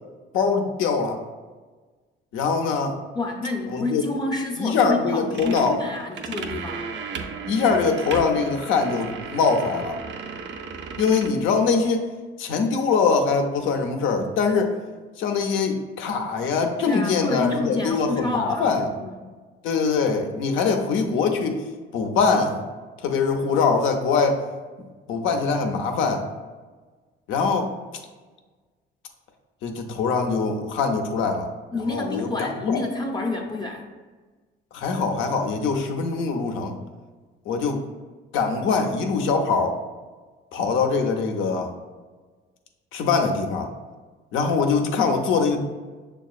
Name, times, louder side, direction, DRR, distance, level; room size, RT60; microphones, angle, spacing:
voice 1, 0.3-1.2 2.3-3.0 3.7-4.0 4.6-5.8 7.5-10.0 11.0-12.1 12.4-14.7 15.2-18.9 19.6-21.6 21.9-22.6 23.0-24.4 25.1-26.3 27.3-27.7 29.6-31.5 31.8-32.8 34.7-36.7 37.5-37.8 38.3-39.8 40.5-41.7 42.9-43.7 44.3-45.6, left 5 dB, 85° left, 4 dB, 0.5 m, -23 dB
voice 2, 3.1-6.9 16.9-19.2 31.7-33.9, left 2 dB, 20° left, 0 dB, 0.5 m, -29 dB
sound 1, 5.3-11.3, right 5 dB, 65° right, 0.5 m, -35 dB
6.1 x 2.3 x 2.4 m, 1.4 s
cardioid pair, 90°, 20 cm